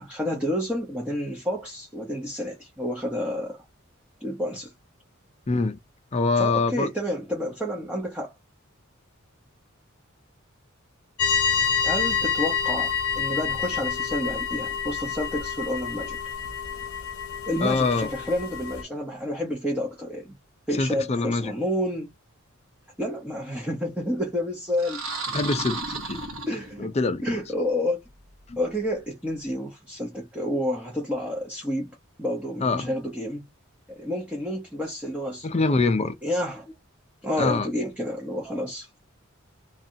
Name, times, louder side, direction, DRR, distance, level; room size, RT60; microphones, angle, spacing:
voice 1, 0.0-3.6 4.2-4.7 6.4-8.3 11.8-16.3 17.5-20.3 20.7-22.1 23.0-25.0 26.5-26.9 27.2-28.0 28.6-31.9 32.2-33.5 34.0-35.5 36.2-36.7 37.2-39.0, left 1 dB, 5° right, 0.7 m, -29 dB
voice 2, 5.5-5.8 6.1-6.9 17.6-18.1 20.8-21.5 25.3-26.2 26.8-27.4 28.5-28.6 32.6-32.9 35.4-36.2 37.4-37.7, left 3 dB, 30° left, 0.5 m, -24 dB
sound 1, 11.2-18.8, left 6 dB, 80° left, 0.7 m, -28 dB
sound 2, 24.7-27.0, right 3 dB, 80° right, 1.2 m, -33 dB
2.7 x 2.3 x 2.6 m
head